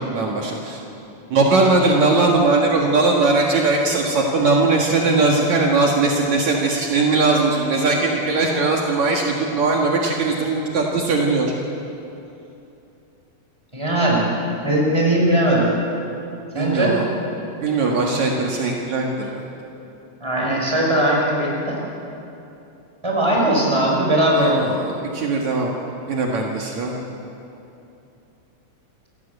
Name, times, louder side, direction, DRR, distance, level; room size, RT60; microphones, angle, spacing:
voice 1, 0.1-0.8 1.3-11.5 16.5-17.0 17.6-19.4 24.3-25.7 26.1-27.0, right 3 dB, 65° right, -1 dB, 3.1 m, -19 dB
voice 2, 13.7-14.3 14.6-15.7 16.5-17.0 20.2-21.8 23.0-24.6, right 1 dB, 10° right, -2 dB, 5.3 m, -19 dB
28.5 x 17.5 x 8.2 m, 2.8 s
omnidirectional pair, 3.6 m